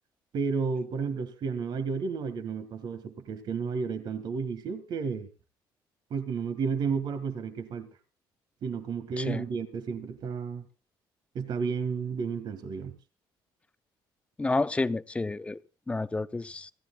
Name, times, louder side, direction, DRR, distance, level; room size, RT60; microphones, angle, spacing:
voice 1, 0.3-5.3 6.1-7.9 8.6-10.7 11.3-12.9, right 5 dB, 60° right, 1.8 m, -32 dB
voice 2, 14.4-15.6 15.9-16.7, left 3 dB, 15° left, 0.6 m, -30 dB
26.5 x 14.5 x 2.3 m
cardioid pair, 115°, 9 cm